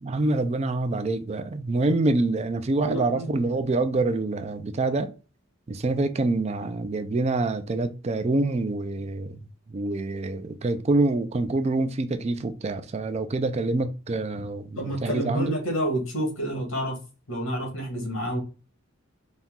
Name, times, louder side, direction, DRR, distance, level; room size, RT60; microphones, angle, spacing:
voice 1, 0.0-5.1 5.7-9.4 9.7-15.5, right 2 dB, 30° right, 0.4 m, -26 dB
voice 2, 2.8-3.6 14.7-17.0 17.3-18.4, right 1 dB, 90° left, 1.7 m, -29 dB
4.1 x 2.3 x 3.6 m
head